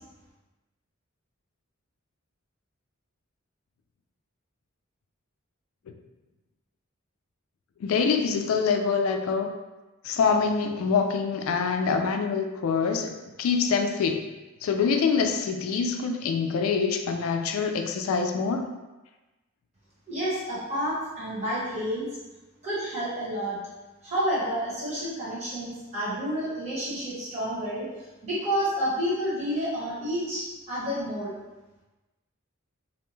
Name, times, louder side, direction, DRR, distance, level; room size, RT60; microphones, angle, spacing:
voice 1, 7.8-9.5 10.0-13.1 13.4-14.2 14.6-18.7, left 5 dB, 85° left, 6 dB, 0.3 m, -25 dB
voice 2, 20.1-22.1 22.6-23.6 24.0-27.9 28.2-31.3, equal, 30° right, -9 dB, 1.0 m, -29 dB
2.6 x 2.2 x 3.0 m, 1.1 s
head